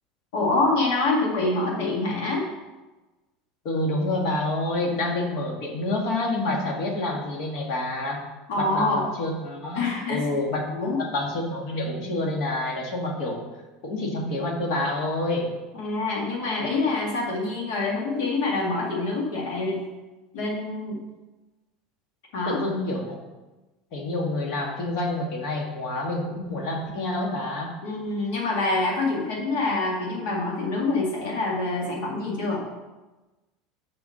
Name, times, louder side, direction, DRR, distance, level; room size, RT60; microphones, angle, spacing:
voice 1, 0.3-2.4 8.5-9.1 9.7-10.3 10.7-11.0 15.7-19.8 20.3-21.0 22.3-22.6 27.8-32.6, left 3 dB, 70° left, -3 dB, 2.0 m, -26 dB
voice 2, 3.7-8.2 8.6-10.6 11.0-13.4 13.8-15.5 22.5-23.2 23.9-27.7, left 2 dB, 45° left, 0 dB, 1.8 m, -28 dB
7.1 x 5.5 x 6.6 m, 1.1 s
supercardioid pair, 175°, 0 cm